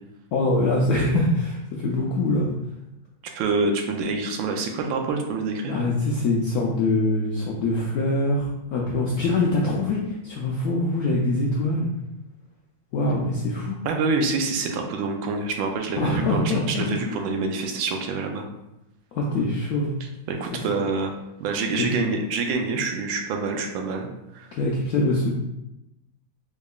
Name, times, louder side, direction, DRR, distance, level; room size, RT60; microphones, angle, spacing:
voice 1, 0.3-2.5 5.7-11.9 12.9-13.8 16.0-16.9 19.1-19.9 20.5-20.6 24.5-25.4, left 2 dB, 80° left, -2 dB, 0.8 m, -24 dB
voice 2, 3.3-5.8 13.8-18.5 20.0-21.1 21.4-24.6, right 3 dB, 85° right, 3 dB, 1.4 m, -26 dB
3.7 x 3.5 x 2.3 m, 0.90 s
omnidirectional pair, 2.1 m